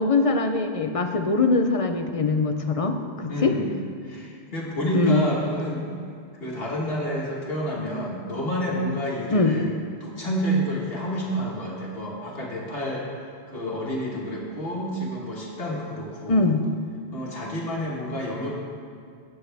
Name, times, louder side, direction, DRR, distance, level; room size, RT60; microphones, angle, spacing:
voice 1, 0.0-3.5 4.9-5.2 9.3-9.5 16.3-16.6, left 3 dB, 40° left, 6 dB, 0.7 m, -22 dB
voice 2, 3.3-3.7 4.0-5.8 6.4-9.7 10.0-16.5 17.1-18.5, equal, 65° left, -4 dB, 1.7 m, -29 dB
17.5 x 7.3 x 3.4 m, 2.3 s
omnidirectional pair, 1.1 m